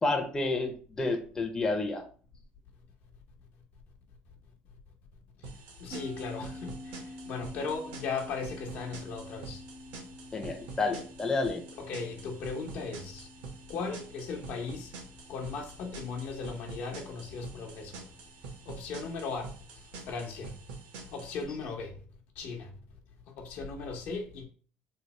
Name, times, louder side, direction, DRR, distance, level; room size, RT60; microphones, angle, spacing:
voice 1, 0.0-2.0 10.3-11.6, left 3 dB, 15° left, 0.5 m, -30 dB
sound 1, 5.4-21.4, right 4 dB, 85° right, 1.0 m, -47 dB
voice 2, 5.8-9.6 11.8-13.3 13.7-14.9 15.3-18.0 18.7-19.5 20.1-20.5 21.1-21.9 22.4-22.7 23.4-24.5, left 4 dB, 65° left, 0.8 m, -37 dB
sound 2, 5.9-18.7, left 1 dB, 35° right, 0.5 m, -49 dB
3.2 x 2.0 x 4.1 m
cardioid pair, 120°, 4 cm